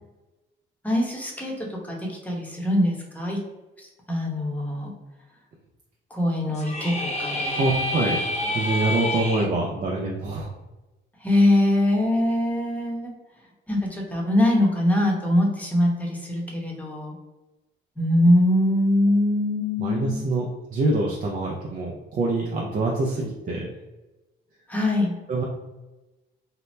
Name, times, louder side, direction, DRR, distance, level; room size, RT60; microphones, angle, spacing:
voice 1, 0.8-3.4 3.8-4.9 6.1-7.6 11.2-13.1 13.7-17.1 18.0-20.2 24.7-25.1, left 1 dB, 5° left, -2 dB, 0.8 m, -23 dB
sound 1, 6.5-9.5, left 1 dB, 35° left, 0.5 m, -28 dB
voice 2, 7.6-10.5 18.2-18.3 19.8-23.7 25.3-25.4, right 2 dB, 40° right, -2 dB, 0.5 m, -25 dB
2.8 x 2.0 x 3.1 m, 1.1 s
cardioid pair, 90°, 20 cm